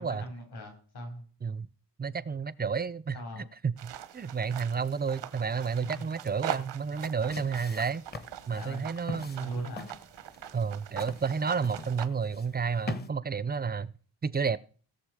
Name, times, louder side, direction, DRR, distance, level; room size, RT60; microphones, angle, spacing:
voice 1, 0.0-1.3 3.1-3.5 5.8-6.1 8.4-8.9 9.4-9.9, left 1 dB, 65° left, 5.5 m, -41 dB
voice 2, 2.0-8.0 8.5-9.5 10.5-13.9 14.2-14.6, right 5 dB, 25° right, 0.5 m, -31 dB
sound 1, 3.8-12.1, right 11 dB, 85° right, 0.9 m, -42 dB
sound 2, 6.9-13.1, left 2 dB, 25° left, 0.8 m, -42 dB
17.0 x 6.9 x 4.9 m
wide cardioid pair, 125°, 41 cm